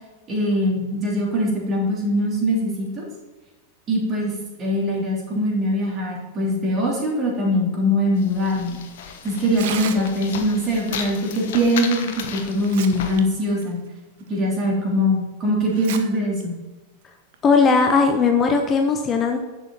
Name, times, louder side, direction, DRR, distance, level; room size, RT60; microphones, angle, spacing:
voice 1, 0.3-3.0 3.9-4.3 4.6-8.8 9.2-13.8 14.3-16.5, equal, 25° right, -2 dB, 3.3 m, -22 dB
sound 1, 8.2-13.2, left 7 dB, 55° left, 1.2 m, -34 dB
Tearing, 9.4-10.4 11.9-12.0 12.5-13.2 13.6-13.7 14.4-14.5 15.7-16.0 16.4-16.5 17.3-17.6, right 9 dB, 55° right, 0.9 m, -33 dB
voice 2, 17.4-19.4, left 5 dB, 25° left, 4 dB, 0.9 m, -18 dB
10.5 x 7.2 x 4.1 m, 1.2 s
figure-of-eight pair, 90°, 0 cm